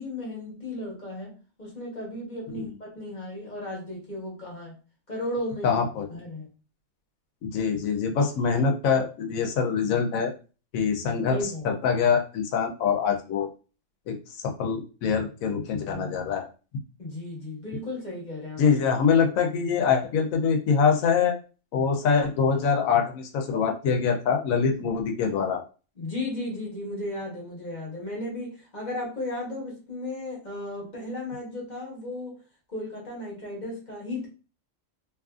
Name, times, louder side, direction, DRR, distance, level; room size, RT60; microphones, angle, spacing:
voice 1, 0.0-1.3 1.6-4.7 5.1-5.8 6.1-6.5 11.3-11.7 17.0-18.8 26.0-32.3 32.7-34.3, left 1 dB, 35° left, -3 dB, 1.1 m, -35 dB
voice 2, 5.6-6.1 7.4-10.3 10.7-13.5 14.1-14.2 14.4-16.5 18.6-21.4 21.7-25.6, left 6 dB, 90° left, 4 dB, 1.0 m, -24 dB
2.9 x 2.4 x 2.4 m, 0.35 s
omnidirectional pair, 1.4 m